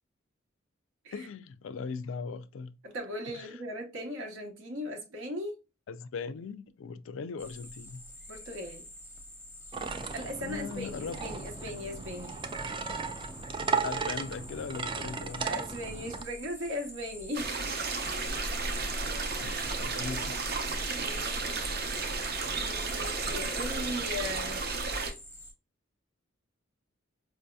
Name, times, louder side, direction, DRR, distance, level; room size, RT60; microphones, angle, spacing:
voice 1, 1.1-2.8 3.3-3.6 5.9-8.0 10.4-11.2 13.8-15.4 18.3-18.7 19.4-20.4, left 5 dB, 75° left, 0.3 m, -39 dB
voice 2, 2.8-5.6 8.3-8.9 10.1-12.4 15.4-17.7 20.9-21.9 22.5-24.6, left 1 dB, 85° right, 0.9 m, -38 dB
sound 1, 7.4-25.5, equal, 10° right, 0.7 m, -48 dB
sound 2, 9.7-16.2, right 5 dB, 25° right, 0.3 m, -35 dB
sound 3, 17.3-25.1, right 3 dB, 55° right, 0.7 m, -33 dB
4.7 x 2.7 x 2.2 m
head